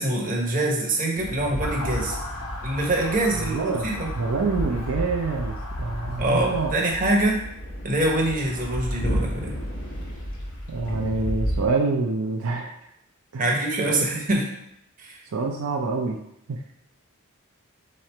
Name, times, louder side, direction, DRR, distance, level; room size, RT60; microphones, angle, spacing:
voice 1, 0.0-2.2 2.6-4.1 6.2-7.4 7.8-9.6 13.4-14.5 15.0-15.2, right 1 dB, 40° right, 0 dB, 0.8 m, -24 dB
sound 1, 1.2-11.7, equal, 60° left, 1.2 m, -32 dB
Motor vehicle (road) / Siren, 1.6-6.9, left 2 dB, 75° left, 0.9 m, -38 dB
voice 2, 3.3-3.9 4.2-6.7 10.7-12.7 13.3-13.5 14.0-14.1 15.3-16.2 16.5-16.6, right 4 dB, 80° right, 1 dB, 0.5 m, -26 dB
3.8 x 3.1 x 4.3 m, 0.78 s
head